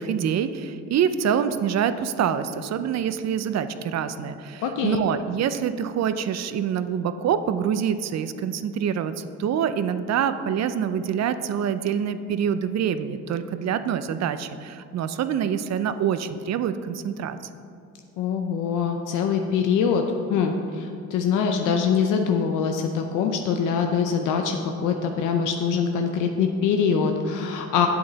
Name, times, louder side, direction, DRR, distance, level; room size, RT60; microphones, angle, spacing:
voice 1, 0.0-17.4, right 8 dB, 60° right, 11 dB, 0.5 m, -26 dB
voice 2, 4.6-5.0 18.2-20.0 20.3-27.9, left 6 dB, 90° left, 4 dB, 0.6 m, -23 dB
8.6 x 7.8 x 4.0 m, 2.5 s
cardioid pair, 90°, 30 cm